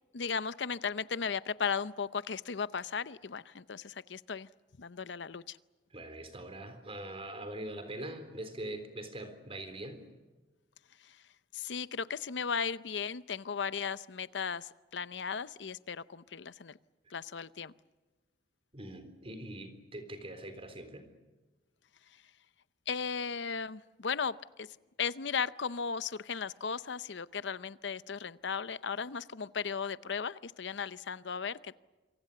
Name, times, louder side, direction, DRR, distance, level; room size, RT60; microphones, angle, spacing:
voice 1, 0.1-4.5 4.8-5.6 11.0-11.2 11.5-16.8 17.1-17.7 22.9-24.7 25.0-31.8, left 6 dB, 80° left, 16 dB, 0.7 m, -36 dB
voice 2, 5.9-10.0 18.7-21.1, right 1 dB, 35° right, 9 dB, 3.8 m, -43 dB
27.5 x 24.5 x 6.8 m, 1.2 s
head